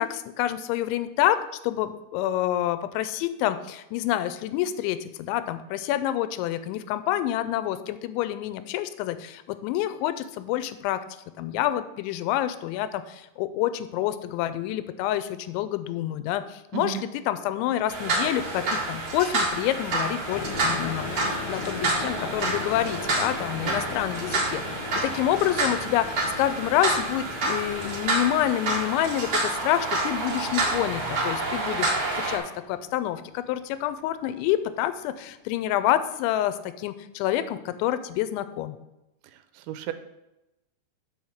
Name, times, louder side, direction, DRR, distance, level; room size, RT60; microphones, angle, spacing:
voice 1, 0.0-11.0 11.4-17.0 17.3-38.8, left 12 dB, 90° left, 12 dB, 3.0 m, -28 dB
sound 1, 17.9-32.4, right 2 dB, 60° right, 1.3 m, -28 dB
sound 2, 20.3-33.8, left 5 dB, 70° left, 2.2 m, -40 dB
voice 2, 39.5-39.9, right 13 dB, 90° right, 10 dB, 2.9 m, -33 dB
6.5 x 5.8 x 7.0 m, 0.92 s
omnidirectional pair, 5.2 m